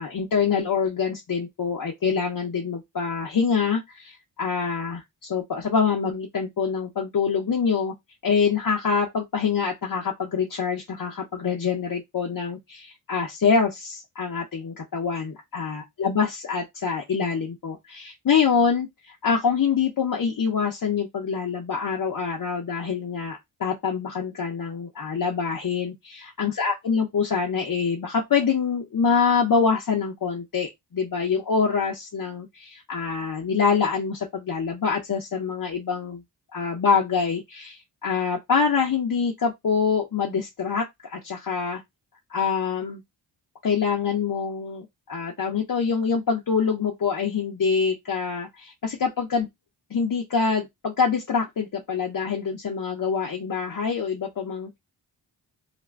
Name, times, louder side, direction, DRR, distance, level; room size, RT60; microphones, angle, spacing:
voice 1, 0.0-7.9 8.2-36.2 36.5-41.8 42.3-43.0 43.6-49.5 49.9-54.8, left 6 dB, 50° left, 0.8 m, -25 dB
2.5 x 2.2 x 3.2 m
cardioid pair, 55°, 45 cm